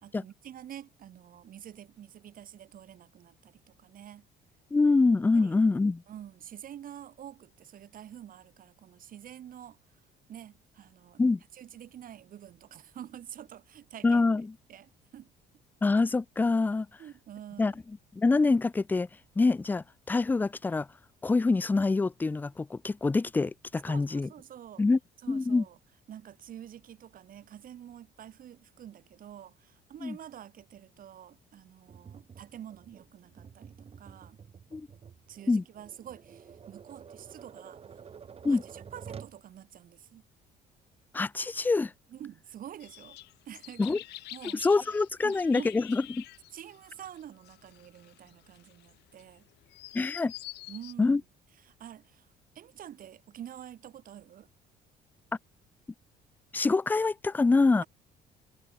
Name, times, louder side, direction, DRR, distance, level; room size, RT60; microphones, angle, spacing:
voice 1, 0.0-4.3 5.3-5.6 6.1-9.8 10.3-11.2 11.5-14.2 14.7-15.3 17.0-17.8 23.9-24.8 25.2-25.8 26.1-34.4 35.3-37.8 38.5-40.2 42.1-43.2 43.5-44.0 44.3-44.6 45.2-45.8 46.5-49.5 50.7-51.2 51.6-52.3 52.5-54.5, right 10 dB, 55° right, 4.0 m, -47 dB
voice 2, 4.7-6.0 11.2-11.4 14.0-14.5 15.8-16.9 17.6-17.7 18.1-19.1 19.4-20.9 21.2-24.3 24.8-25.0 25.3-25.6 30.0-30.2 34.7-34.9 35.5-35.6 38.4-38.6 41.1-41.9 43.8-44.0 44.6-46.2 49.9-50.3 51.0-51.2 56.5-57.8, left 3 dB, 10° left, 0.3 m, -25 dB
Tap, 31.9-39.4, right 7 dB, 35° right, 1.7 m, -49 dB
sound 1, 42.8-50.9, left 18 dB, 80° left, 2.4 m, -47 dB
cardioid pair, 110°, 17 cm